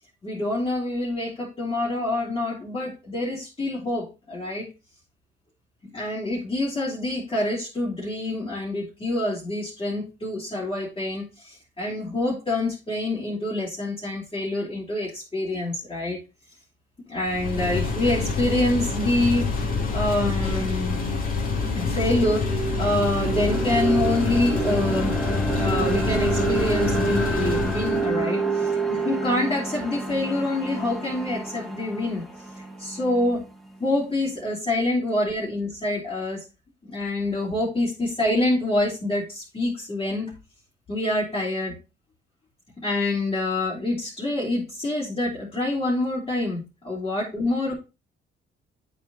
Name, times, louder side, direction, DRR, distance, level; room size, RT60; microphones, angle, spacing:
voice 1, 0.2-4.7 5.8-16.2 17.1-19.5 19.9-21.0 21.8-25.2 25.5-28.4 28.9-32.2 32.8-33.4 33.8-36.5 36.8-40.3 40.9-41.7 42.8-47.7, left 1 dB, 25° left, -7 dB, 3.5 m, -26 dB
sound 1, 17.3-28.1, left 4 dB, 45° left, 2.7 m, -27 dB
sound 2, 21.6-33.7, right 4 dB, ahead, 1.6 m, -28 dB
8.7 x 4.4 x 4.1 m, 0.28 s
cardioid pair, 90°, 20 cm